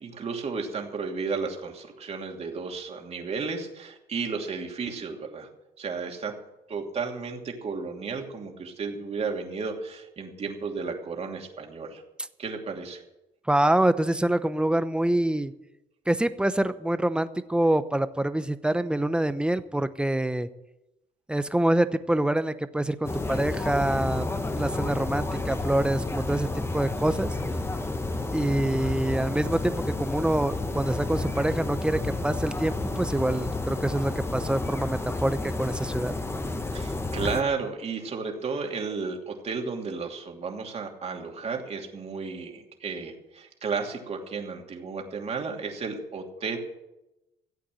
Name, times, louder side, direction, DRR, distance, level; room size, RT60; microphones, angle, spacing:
voice 1, 0.0-5.5 5.8-6.3 6.7-12.0 12.4-13.0 36.7-46.6, right 4 dB, 40° right, 2 dB, 2.8 m, -33 dB
voice 2, 13.5-15.5 16.1-20.5 21.3-24.3 24.5-27.3 28.3-36.2, right 1 dB, 5° right, 12 dB, 0.8 m, -26 dB
sound 1, 23.0-37.4, left 2 dB, 15° left, 1.1 m, -31 dB
15.5 x 8.4 x 7.7 m, 0.94 s
cardioid pair, 110°, 17 cm